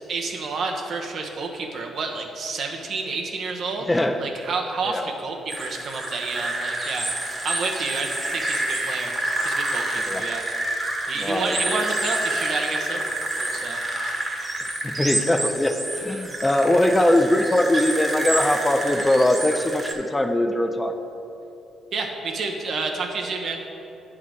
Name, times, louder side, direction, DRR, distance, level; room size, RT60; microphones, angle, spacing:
voice 1, 0.1-3.8 4.2-7.1 7.4-9.1 9.4-10.4 11.1-13.1 13.4-14.1 21.9-23.6, right 4 dB, 60° right, 2 dB, 1.0 m, -29 dB
voice 2, 3.8-4.2 4.8-5.0 10.0-10.2 11.2-11.8 14.8-20.9, left 1 dB, 15° left, 5 dB, 0.5 m, -21 dB
sound 1, 5.5-19.9, right 1 dB, 20° right, 1.2 m, -28 dB
9.1 x 3.8 x 6.3 m, 3.0 s
cardioid pair, 90°, 0 cm